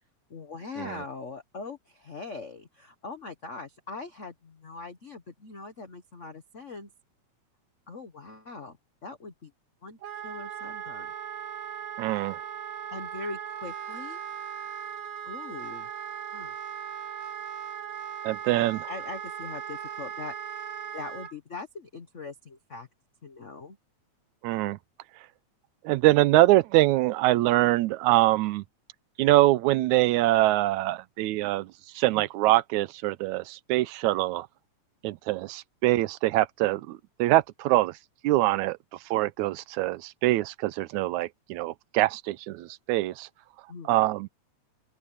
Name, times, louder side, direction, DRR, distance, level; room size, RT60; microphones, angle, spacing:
voice 1, 0.3-6.9 7.9-8.8 9.0-9.5 9.8-10.0 10.2-11.1 12.9-14.2 15.2-15.9 16.3-16.5 18.4-20.6 20.9-22.9 23.2-23.8 43.7-43.9, left 4 dB, 60° left, 0.7 m, -41 dB
Wind instrument woodwind instrument, 10.0-21.3, right 8 dB, 50° right, 2.2 m, -38 dB
voice 2, 12.0-12.4 18.2-18.9 24.4-24.8 25.8-28.6 29.2-34.5 35.0-37.9 38.2-38.8 39.1-43.3 43.9-44.3, right 17 dB, 90° right, 2.0 m, -24 dB
open air
omnidirectional pair, 3.3 m